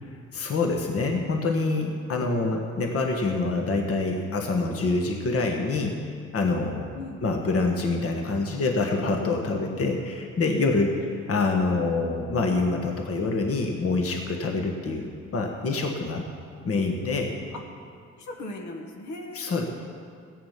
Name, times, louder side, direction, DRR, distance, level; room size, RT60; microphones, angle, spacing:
voice 1, 0.0-6.9 7.2-10.9 11.3-16.2 16.6-17.3 19.3-19.7, left 3 dB, 50° left, 2 dB, 1.4 m, -26 dB
voice 2, 10.9-11.2 17.0-17.6 18.2-19.6, left 2 dB, 70° left, 2 dB, 1.6 m, -39 dB
14.0 x 9.0 x 5.8 m, 2.2 s
cardioid pair, 90°, 30 cm